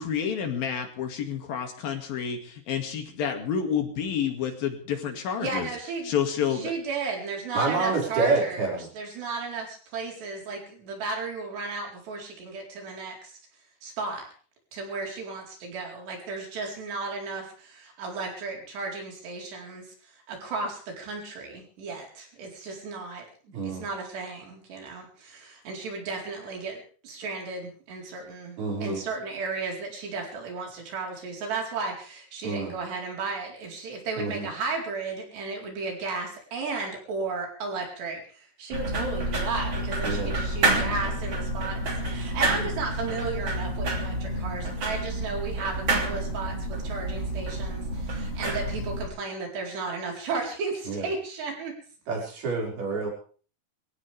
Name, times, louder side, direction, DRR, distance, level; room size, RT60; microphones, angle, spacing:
voice 1, 0.0-5.7 6.1-6.7, left 8 dB, 65° left, 4 dB, 4.0 m, -29 dB
voice 2, 5.4-6.1 6.5-13.4 13.8-14.3 14.7-23.3 23.6-51.7, right 4 dB, 85° right, 0 dB, 6.5 m, -34 dB
voice 3, 7.5-8.9 23.5-23.8 28.6-29.0 32.4-32.7 34.2-34.5 40.0-40.4 50.9-51.1 52.1-53.1, right 4 dB, 65° right, -2 dB, 7.4 m, -28 dB
sound 1, 38.7-49.1, right 1 dB, 35° right, 3.8 m, -29 dB
24.0 x 16.5 x 3.5 m, 0.42 s
omnidirectional pair, 4.7 m